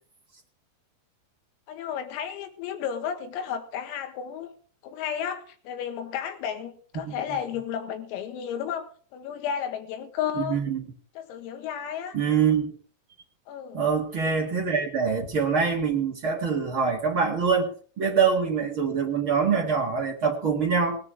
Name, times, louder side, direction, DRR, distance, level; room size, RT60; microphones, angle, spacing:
voice 1, 1.7-4.5 4.8-10.6 11.2-12.2 13.5-13.9, left 8 dB, 85° left, 6 dB, 4.4 m, -33 dB
voice 2, 10.4-10.8 12.1-12.7 13.7-17.7 18.0-21.0, right 6 dB, 65° right, -1 dB, 1.3 m, -24 dB
19.5 x 9.7 x 5.0 m, 0.43 s
omnidirectional pair, 6.0 m